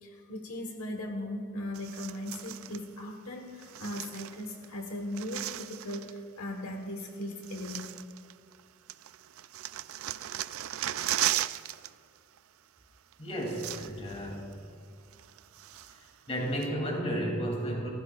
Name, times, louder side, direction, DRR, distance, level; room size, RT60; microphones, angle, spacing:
voice 1, 0.0-8.0, left 1 dB, 80° left, 3 dB, 1.4 m, -38 dB
sound 1, 1.7-2.8 3.6-4.7 4.9-6.2 7.0-7.1 7.4-8.6 8.9-11.9 12.2-12.4 13.1-13.2 13.4-14.2 14.5-14.6 15.1-16.1 16.6-16.7, right 13 dB, 65° right, 0.4 m, -36 dB
voice 2, 13.2-14.6 15.9-16.0 16.3-17.9, equal, 30° left, 0 dB, 2.9 m, -33 dB
30.0 x 15.0 x 2.4 m, 2.3 s
head